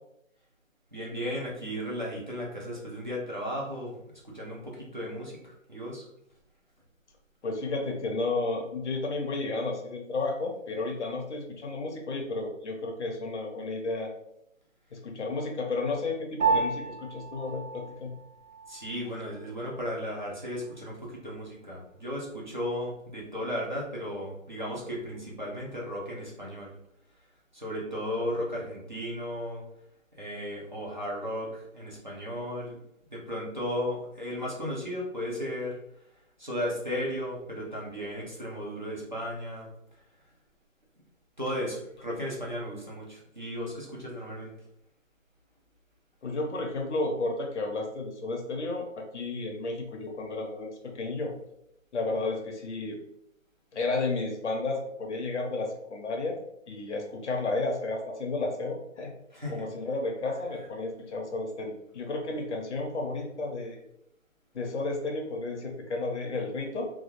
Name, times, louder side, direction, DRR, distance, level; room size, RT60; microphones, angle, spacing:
voice 1, 0.9-4.0 4.3-6.1 18.7-26.7 27.5-29.6 30.1-32.8 33.1-35.7 36.4-39.7 41.4-44.5 59.3-59.7, equal, 35° right, -4 dB, 0.5 m, -35 dB
voice 2, 7.4-14.1 14.9-18.1 46.2-51.3 51.9-53.0 53.7-56.4 56.7-59.1 59.5-63.8 64.5-66.9, left 3 dB, 55° left, 1 dB, 0.6 m, -32 dB
Piano, 16.4-26.0, right 4 dB, 85° right, 0.9 m, -36 dB
2.3 x 2.0 x 2.8 m, 0.79 s
figure-of-eight pair, 175°, 41 cm